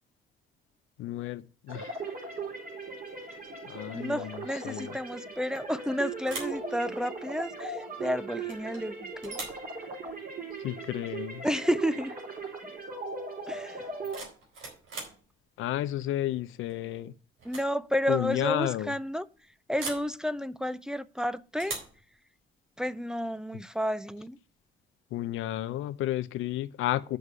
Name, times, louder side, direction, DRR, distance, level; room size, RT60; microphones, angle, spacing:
voice 1, 1.0-1.9 3.6-4.9 10.6-11.4 15.6-17.1 18.1-18.9 25.1-27.2, left 13 dB, 85° left, 0.7 m, -32 dB
sound 1, 1.7-14.2, right 3 dB, 45° right, 4.0 m, -39 dB
voice 2, 3.9-9.4 11.4-12.2 13.5-13.9 17.4-19.3 19.7-21.8 22.8-24.4, equal, 5° right, 0.6 m, -31 dB
sound 2, 5.5-5.9 6.2-6.6 8.5-8.8 9.2-9.7 11.5-11.7 12.0-12.4 13.8-15.2 16.7-17.0 17.4-17.7 18.0-18.1 19.8-20.1 21.6-22.0, right 3 dB, 85° right, 4.1 m, -40 dB
8.0 x 6.3 x 6.8 m
cardioid pair, 90°, 20 cm